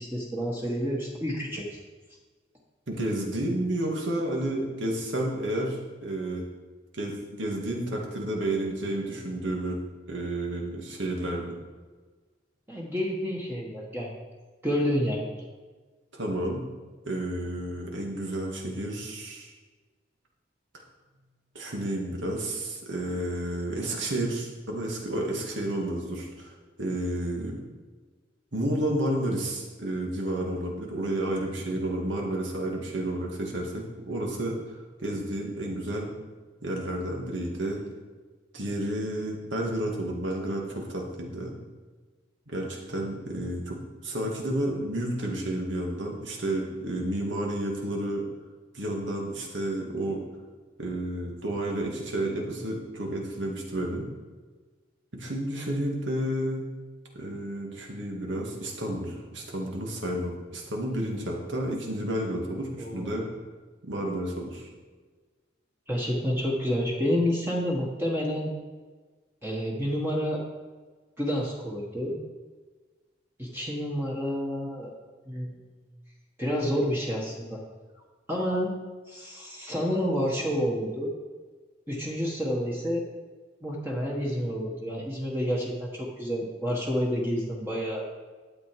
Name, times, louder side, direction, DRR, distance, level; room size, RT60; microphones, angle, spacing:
voice 1, 0.0-1.8 12.7-14.1 14.6-15.2 62.8-63.2 65.9-68.5 69.4-70.4 71.2-72.2 73.4-74.9 75.3-75.6 76.4-77.6 78.3-78.7 79.1-81.1 81.9-83.0 83.6-88.1, equal, 10° right, -3 dB, 1.3 m, -29 dB
voice 2, 2.9-6.4 6.9-9.8 10.1-11.5 16.1-16.6 17.1-19.6 21.5-26.5 26.8-27.6 28.5-36.1 36.6-37.8 38.5-41.5 42.5-48.2 48.7-50.2 50.8-54.1 55.1-56.7 57.1-63.3 63.8-64.7, right 1 dB, 75° right, 0 dB, 2.2 m, -31 dB
12.0 x 7.7 x 4.7 m, 1.4 s
head